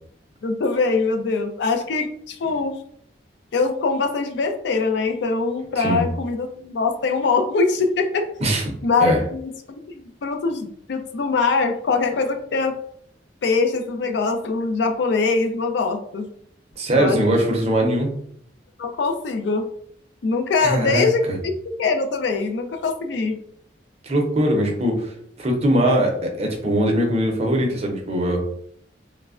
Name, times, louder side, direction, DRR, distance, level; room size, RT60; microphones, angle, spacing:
voice 1, 0.4-2.8 3.5-8.3 8.8-12.8 13.4-16.3 16.9-17.3 18.8-19.7 20.2-21.5 21.8-23.4, left 4 dB, 70° left, 6 dB, 0.4 m, -23 dB
voice 2, 16.8-18.1 20.6-21.1 24.0-25.1 25.4-28.4, right 1 dB, 35° right, 1 dB, 0.6 m, -21 dB
3.2 x 2.1 x 2.4 m, 0.65 s
head